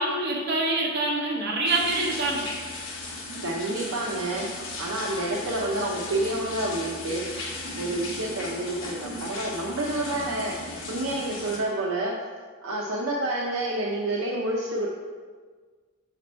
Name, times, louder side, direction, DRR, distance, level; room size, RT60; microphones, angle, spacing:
voice 1, 0.0-2.4, right 2 dB, 50° right, -3 dB, 1.1 m, -25 dB
sound 1, 1.7-11.6, left 2 dB, 65° left, 1.1 m, -36 dB
voice 2, 3.4-4.5 4.8-7.2 7.8-12.1 12.6-14.9, right 1 dB, 80° right, -3 dB, 0.7 m, -29 dB
5.9 x 5.1 x 4.3 m, 1.5 s
head